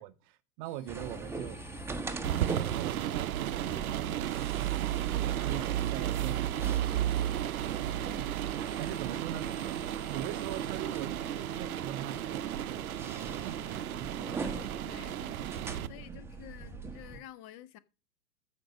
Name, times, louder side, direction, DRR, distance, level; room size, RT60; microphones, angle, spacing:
voice 1, 0.0-1.6 2.7-7.4 8.6-9.6 10.1-14.5 15.8-16.2, right 12 dB, 35° right, 0.8 m, -43 dB
sound 1, 0.6-11.1, left 14 dB, 65° left, 4.3 m, -60 dB
sound 2, 0.9-17.2, right 4 dB, 5° right, 1.0 m, -42 dB
sound 3, 2.2-15.9, right 12 dB, 70° right, 0.7 m, -33 dB
voice 2, 7.9-8.3 14.4-15.2 15.9-17.8, left 12 dB, 30° left, 0.8 m, -50 dB
14.0 x 5.3 x 6.3 m
hypercardioid pair, 110°, 45 cm